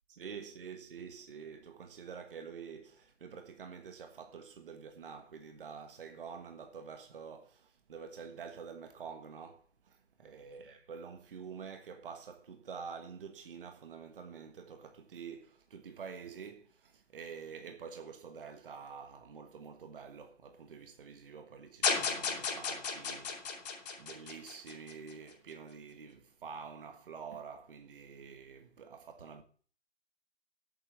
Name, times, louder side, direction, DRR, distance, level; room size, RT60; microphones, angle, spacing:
voice 1, 0.1-23.6 24.0-29.4, right 6 dB, 45° right, 1.5 m, -47 dB
sound 1, 21.8-25.1, left 5 dB, 35° left, 3.0 m, -34 dB
9.0 x 7.7 x 8.3 m
hypercardioid pair, 165°, 38 cm